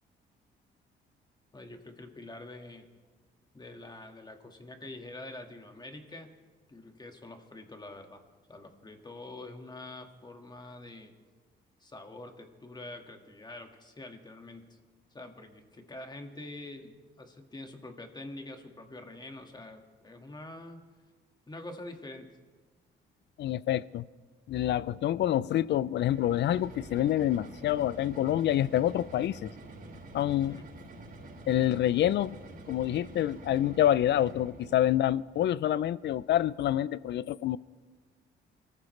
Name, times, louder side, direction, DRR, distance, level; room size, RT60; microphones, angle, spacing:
voice 1, 1.5-2.9 3.5-6.3 6.7-8.2 8.5-11.1 11.8-14.8 15.1-20.9 21.5-22.3 30.5-30.7, left 2 dB, 20° left, 5 dB, 1.8 m, -45 dB
voice 2, 23.4-24.0 24.5-29.5 30.1-30.6 31.5-32.4 32.7-37.6, left 12 dB, 60° left, 20 dB, 0.5 m, -27 dB
sound 1, 26.0-35.1, right 2 dB, 50° right, 4.5 m, -47 dB
23.5 x 14.0 x 3.2 m, 1.4 s
cardioid pair, 90°, 20 cm